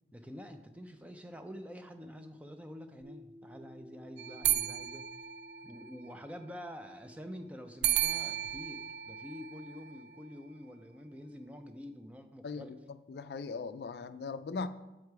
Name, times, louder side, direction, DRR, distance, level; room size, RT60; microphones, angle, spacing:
voice 1, 0.1-5.1 5.6-12.8, equal, 10° right, 7 dB, 0.4 m, -47 dB
sound 1, 3.0-11.8, equal, 55° right, 2.2 m, -57 dB
sound 2, 4.2-6.1 7.8-10.2, right 12 dB, 75° right, 0.3 m, -34 dB
voice 2, 12.4-14.7, left 4 dB, 65° left, 12 dB, 0.3 m, -39 dB
7.4 x 4.9 x 4.7 m, 1.0 s
head